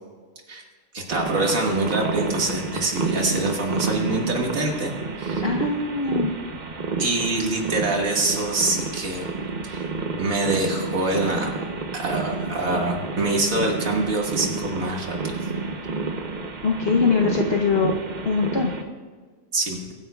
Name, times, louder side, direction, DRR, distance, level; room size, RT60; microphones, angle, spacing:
voice 1, 0.9-4.9 5.2-5.5 7.0-9.3 9.6-9.8 10.2-11.5 11.9-15.4 19.5-19.8, right 2 dB, 70° right, 0 dB, 2.2 m, -25 dB
sound 1, 1.1-18.8, right 4 dB, 40° right, 0.8 m, -30 dB
voice 2, 5.4-6.4 16.6-18.0 18.2-18.7, left 4 dB, 50° left, 0 dB, 1.0 m, -22 dB
23.0 x 9.4 x 2.3 m, 1.5 s
omnidirectional pair, 1.5 m